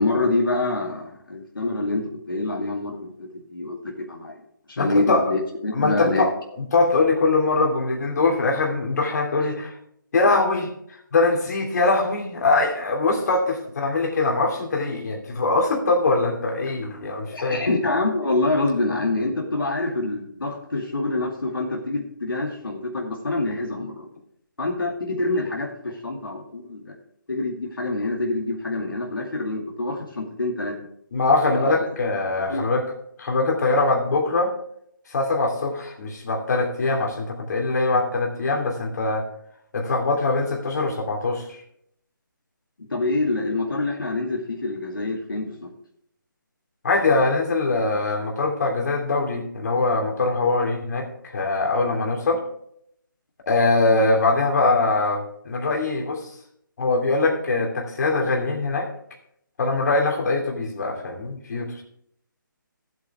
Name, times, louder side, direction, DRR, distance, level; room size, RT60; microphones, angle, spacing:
voice 1, 0.0-4.4 4.7-6.3 17.3-24.1 24.6-26.9 27.3-30.8 31.5-31.8 32.5-32.6 42.9-45.7, left 2 dB, 80° left, -1 dB, 2.3 m, -26 dB
voice 2, 4.8-5.2 5.7-9.8 10.1-10.7 11.1-17.6 31.1-32.9 33.2-34.5 35.1-39.2 39.7-41.6 46.8-52.4 53.5-56.3 56.8-58.9 59.6-61.8, left 3 dB, 50° left, 1 dB, 2.8 m, -22 dB
16.0 x 8.0 x 3.5 m, 0.71 s
figure-of-eight pair, 150°, 11 cm